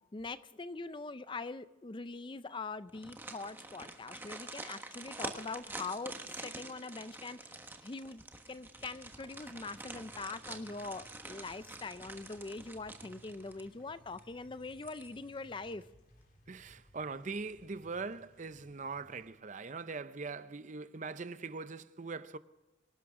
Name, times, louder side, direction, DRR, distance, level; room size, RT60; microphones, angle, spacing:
voice 1, 0.1-6.1 6.4-7.4 7.8-8.2 8.5-15.8, left 3 dB, 25° left, 0.4 m, -43 dB
sound 1, 2.9-13.8 14.2-14.3 14.7-15.4 15.7-15.8, right 2 dB, 10° right, 1.3 m, -47 dB
sound 2, 8.7-19.3, left 1 dB, 45° left, 3.5 m, -62 dB
voice 2, 16.5-22.4, right 4 dB, 40° right, 0.6 m, -41 dB
25.0 x 12.0 x 3.7 m
head